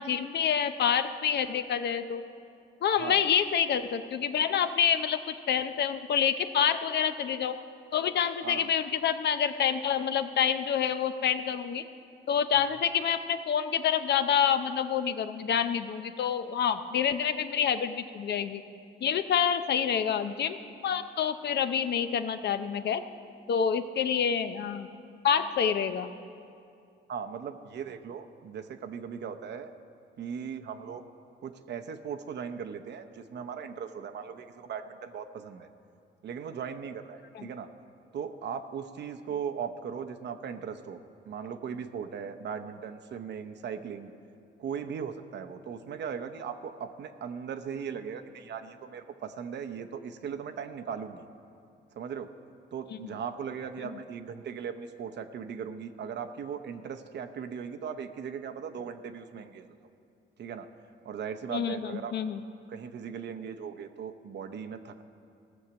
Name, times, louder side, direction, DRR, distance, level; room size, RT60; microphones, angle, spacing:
voice 1, 0.0-2.2 2.8-7.6 7.9-11.8 12.3-18.6 19.0-20.6 20.8-23.0 23.5-24.9 25.2-26.1 37.3-37.5 53.0-53.2 61.5-62.4, left 8 dB, 60° left, 10 dB, 0.7 m, -27 dB
voice 2, 27.1-29.7 30.2-31.0 31.4-35.7 36.2-37.7 38.1-44.1 44.6-51.2 52.0-52.3 52.7-59.7 60.4-60.7 61.0-62.1 62.7-65.0, right 7 dB, 60° right, 7 dB, 0.8 m, -38 dB
16.5 x 6.4 x 7.0 m, 2.5 s
cardioid pair, 90°, 20 cm